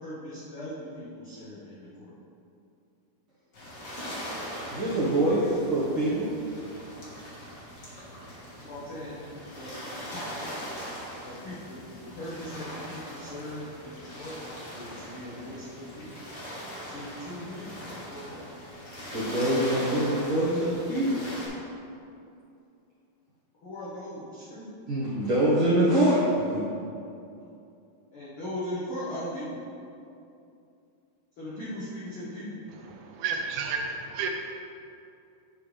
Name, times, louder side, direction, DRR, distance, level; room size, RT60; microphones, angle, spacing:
voice 1, 0.0-2.1 8.6-9.2 9.5-9.7 11.2-11.8 12.1-14.3 14.7-16.1 16.9-18.4 23.6-24.6 28.1-29.6 31.4-32.6, left 1 dB, 85° left, -9 dB, 1.1 m, -39 dB
sound 1, 3.5-21.5, equal, 50° left, 1.3 m, -40 dB
voice 2, 4.7-6.3 19.1-21.2 24.9-26.7, right 1 dB, 50° right, -11 dB, 1.7 m, -24 dB
voice 3, 32.9-34.3, right 5 dB, 80° right, 2 dB, 2.5 m, -31 dB
10.0 x 5.1 x 3.3 m, 2.6 s
omnidirectional pair, 4.3 m